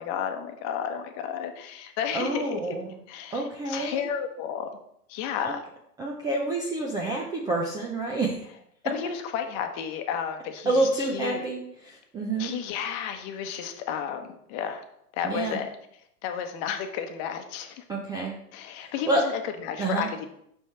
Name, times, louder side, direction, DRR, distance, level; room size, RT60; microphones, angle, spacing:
voice 1, 0.0-2.8 3.1-4.7 5.1-5.6 8.8-11.4 12.4-14.8 15.2-15.7 16.2-17.8 18.5-20.3, left 8 dB, 35° left, 6 dB, 1.0 m, -32 dB
voice 2, 2.1-3.0 3.3-4.1 5.4-5.5 6.0-8.4 10.7-12.5 15.2-15.6 17.9-18.4 18.8-19.2 19.8-20.1, right 2 dB, 10° right, -1 dB, 0.5 m, -28 dB
6.4 x 5.3 x 4.4 m, 0.73 s
hypercardioid pair, 115°, 48 cm